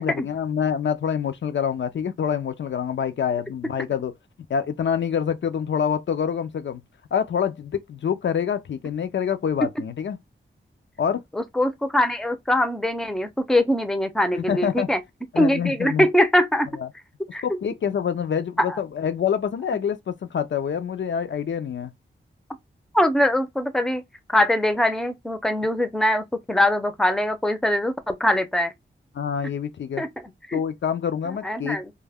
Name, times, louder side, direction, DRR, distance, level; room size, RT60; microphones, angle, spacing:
voice 1, 0.0-4.1 4.5-6.8 7.1-10.2 11.0-11.2 14.3-14.9 15.3-16.1 16.8-16.9 17.4-21.9 29.2-30.0 30.5-31.8, left 7 dB, 65° left, 0.4 m, -26 dB
voice 2, 11.3-15.0 15.4-16.7 17.3-17.4 18.6-18.8 22.9-24.0 24.3-28.7 30.0-30.1 30.5-30.6 31.4-31.9, left 1 dB, ahead, 0.5 m, -22 dB
2.2 x 2.1 x 3.4 m
wide cardioid pair, 75°, 21 cm